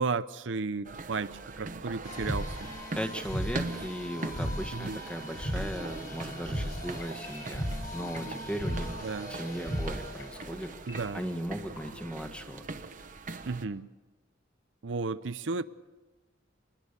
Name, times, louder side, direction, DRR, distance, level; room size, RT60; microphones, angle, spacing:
voice 1, 0.0-1.3 1.6-2.7 4.7-5.0 9.0-9.3 10.9-11.2 13.5-13.9 14.8-15.6, right 4 dB, 75° right, 0.6 m, -33 dB
sound 1, 0.8-13.6, right 3 dB, 45° right, 1.1 m, -41 dB
sound 2, 2.0-10.3, equal, 50° left, 5.3 m, -37 dB
voice 2, 2.9-7.6 7.9-9.0 9.3-10.7 11.1-12.7, equal, 5° left, 1.5 m, -37 dB
sound 3, 6.9-11.9, left 3 dB, 65° left, 5.5 m, -54 dB
26.0 x 20.5 x 6.8 m
head